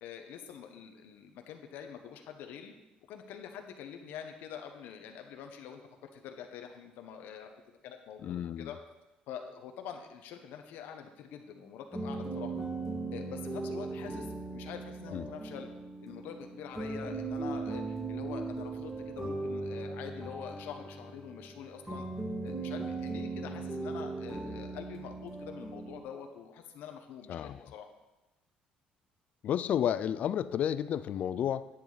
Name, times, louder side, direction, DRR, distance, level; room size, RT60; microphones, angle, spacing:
voice 1, 0.0-2.7 3.1-8.8 9.3-12.5 13.1-15.7 16.0-22.1 22.4-27.9, left 8 dB, 80° left, 5 dB, 1.1 m, -45 dB
voice 2, 8.2-8.7 15.1-15.3 27.3-27.6 29.4-31.7, left 9 dB, 50° left, 14 dB, 0.4 m, -31 dB
sound 1, 11.9-26.0, right 3 dB, 5° right, 2.1 m, -38 dB
10.5 x 9.3 x 4.1 m, 1.0 s
cardioid pair, 150°, 3 cm